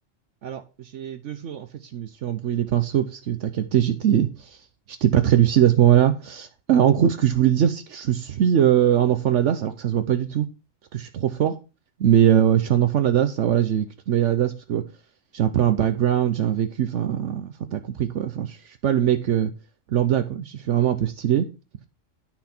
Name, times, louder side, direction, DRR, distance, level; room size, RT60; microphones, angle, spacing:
voice 1, 0.4-1.7 1.9-4.6 5.0-10.5 10.9-11.6 12.0-14.8 15.3-19.5 19.9-21.5, right 10 dB, 70° right, 1.0 m, -21 dB
10.5 x 5.9 x 4.3 m
omnidirectional pair, 1.4 m